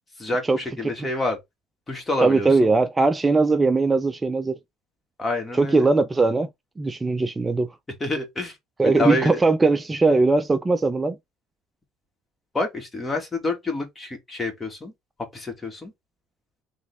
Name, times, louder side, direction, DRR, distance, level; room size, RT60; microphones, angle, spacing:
voice 1, 0.2-1.4 1.9-2.7 5.2-5.9 8.0-8.6 8.8-9.4 12.5-14.9 15.3-15.9, left 2 dB, 20° left, 2.2 m, -27 dB
voice 2, 2.2-4.6 5.5-6.5 6.8-7.7 8.8-11.2, right 3 dB, 20° right, 0.5 m, -20 dB
4.0 x 3.2 x 3.4 m
supercardioid pair, 80°, 0 cm